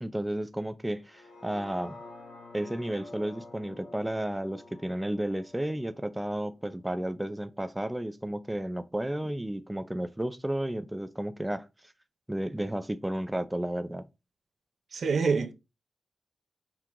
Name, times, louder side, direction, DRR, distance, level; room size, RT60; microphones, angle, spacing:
voice 1, 0.0-2.0 2.5-11.9 12.3-14.0, right 1 dB, 10° right, 0.4 m, -33 dB
sound 1, 1.0-7.2 7.6-7.7, left 2 dB, 80° left, 0.8 m, -49 dB
voice 2, 14.9-15.5, right 5 dB, 65° right, 0.6 m, -26 dB
4.5 x 2.4 x 3.7 m
cardioid pair, 70°, 0 cm